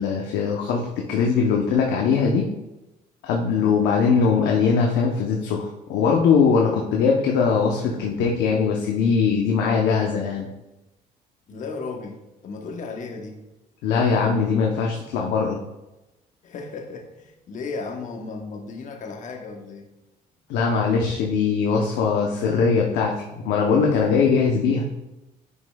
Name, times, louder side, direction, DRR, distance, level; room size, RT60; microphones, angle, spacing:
voice 1, 0.0-2.5 3.2-10.5 13.8-15.6 20.5-24.9, left 5 dB, 85° left, 0 dB, 0.8 m, -21 dB
voice 2, 3.5-3.8 11.5-13.4 16.4-19.9, left 4 dB, 50° left, 4 dB, 1.0 m, -35 dB
9.5 x 5.4 x 2.3 m, 0.99 s
cardioid pair, 110°, 17 cm